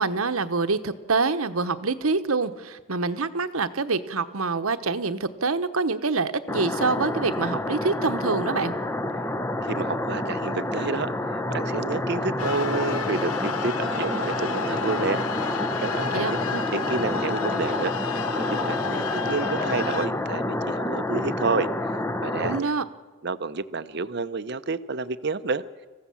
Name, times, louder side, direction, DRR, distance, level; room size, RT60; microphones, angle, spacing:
voice 1, 0.0-8.7 16.1-16.3 22.4-22.8, right 4 dB, 80° right, 11 dB, 1.1 m, -26 dB
sound 1, 6.5-22.6, left 1 dB, 10° left, 0.7 m, -28 dB
voice 2, 9.7-11.1 11.5-15.2 15.8-17.9 18.4-21.7 22.2-22.7 23.2-25.6, right 4 dB, 50° right, 13 dB, 0.7 m, -29 dB
sound 2, 12.4-20.1, left 6 dB, 85° left, 0.8 m, -32 dB
27.0 x 15.5 x 7.1 m, 1.3 s
head